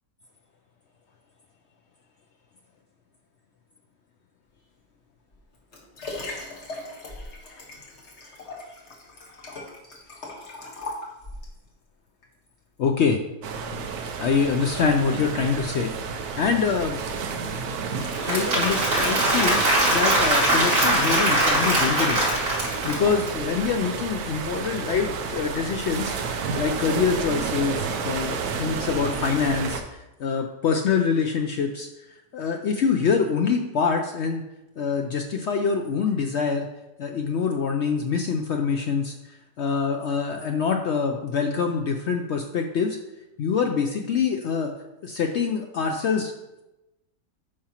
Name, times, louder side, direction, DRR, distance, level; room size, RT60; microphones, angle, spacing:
Liquid, 5.3-11.6 12.2-12.3, left 2 dB, 45° left, 1.6 m, -39 dB
voice 1, 12.8-13.2 14.2-17.0 18.2-22.4 22.8-26.2 26.6-31.9 32.3-34.4 34.8-36.7 37.0-43.0 43.4-44.7 45.0-46.3, left 5 dB, 80° left, 3 dB, 0.6 m, -25 dB
sound 1, 13.4-29.8, right 5 dB, 70° right, 1.2 m, -31 dB
Applause / Crowd, 18.0-23.3, right 1 dB, 90° right, 3.3 m, -22 dB
9.5 x 5.8 x 2.9 m, 0.96 s
omnidirectional pair, 1.8 m